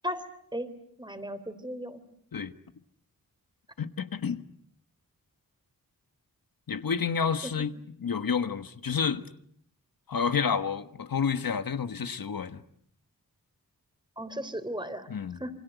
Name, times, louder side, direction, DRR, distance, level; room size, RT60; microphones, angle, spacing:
voice 1, 1.0-2.0 7.4-7.5 14.2-15.1 15.4-15.5, equal, 15° right, 3.2 m, -35 dB
voice 2, 3.8-4.4 6.7-7.7 8.0-9.2 10.1-12.6 15.1-15.4, left 6 dB, 75° left, 1.4 m, -29 dB
28.0 x 25.5 x 8.2 m
wide cardioid pair, 115°, 35 cm